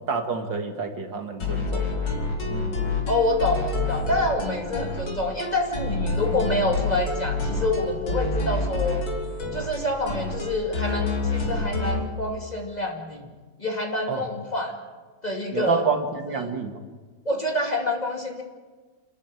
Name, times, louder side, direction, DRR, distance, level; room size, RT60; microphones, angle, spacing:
voice 1, 0.1-1.9 2.5-2.8 14.1-14.2 15.5-16.7, right 5 dB, 65° right, 5 dB, 2.5 m, -28 dB
sound 1, 1.4-12.1, left 3 dB, 80° left, 3.9 m, -28 dB
voice 2, 3.1-9.0 9.5-13.3 13.6-14.7 15.2-15.8 16.3-16.5 17.2-18.4, left 2 dB, 20° left, 1 dB, 2.6 m, -27 dB
28.0 x 13.5 x 9.1 m, 1.4 s
omnidirectional pair, 2.1 m